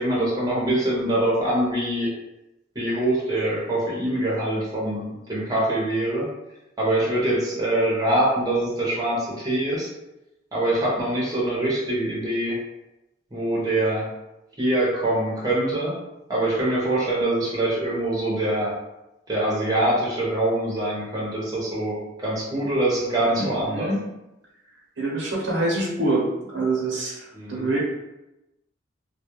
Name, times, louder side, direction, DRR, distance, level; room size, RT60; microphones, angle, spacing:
voice 1, 0.0-2.1 2.7-6.3 6.8-9.9 10.5-12.6 13.3-14.1 14.6-15.9 16.3-18.7 19.3-23.9 27.3-27.7, right 1 dB, 20° right, -5 dB, 0.7 m, -24 dB
voice 2, 23.4-24.0 25.0-27.8, right 2 dB, 75° right, -4 dB, 0.7 m, -25 dB
2.2 x 2.1 x 2.9 m, 0.95 s
head